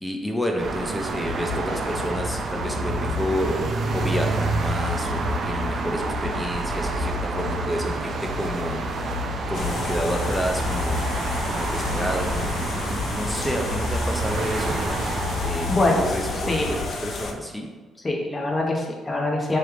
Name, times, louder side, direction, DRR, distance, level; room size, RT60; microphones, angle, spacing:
voice 1, 0.0-9.1 9.5-11.0 11.4-15.0 15.4-17.7, equal, 5° left, 2 dB, 0.5 m, -30 dB
sound 1, 0.6-16.8, right 4 dB, 55° right, 0.4 m, -29 dB
sound 2, 1.3-17.2, left 4 dB, 90° left, 1.4 m, -33 dB
sound 3, 9.5-17.3, left 3 dB, 60° left, 0.5 m, -32 dB
voice 2, 15.7-16.0 16.5-16.7 18.0-19.6, left 2 dB, 25° left, 0 dB, 0.8 m, -23 dB
3.3 x 3.1 x 3.7 m, 1.3 s
cardioid pair, 90°, 0 cm